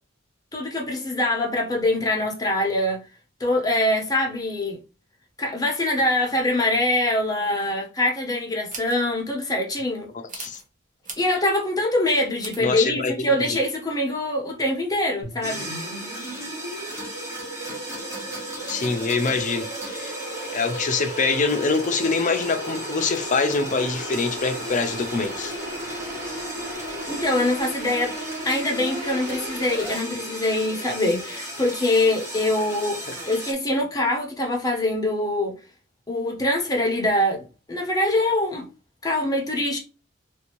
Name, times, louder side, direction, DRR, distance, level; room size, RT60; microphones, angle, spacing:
voice 1, 0.5-3.0 3.4-4.8 5.4-10.1 11.2-15.7 27.1-28.1 28.4-33.0 33.3-35.5 36.1-38.6 39.0-39.8, left 1 dB, 20° left, 1.0 m, -24 dB
sound 1, 8.7-9.0 10.3-10.7 11.0-11.4 12.4-12.6, right 4 dB, 40° right, 0.9 m, -38 dB
voice 2, 10.1-10.6 12.6-13.6 18.7-20.2 20.5-25.6, left 4 dB, 40° left, 0.5 m, -25 dB
sound 2, 15.2-30.0, right 2 dB, 85° right, 1.4 m, -36 dB
sound 3, 15.4-33.5, equal, 15° right, 1.2 m, -36 dB
3.4 x 2.7 x 3.0 m
head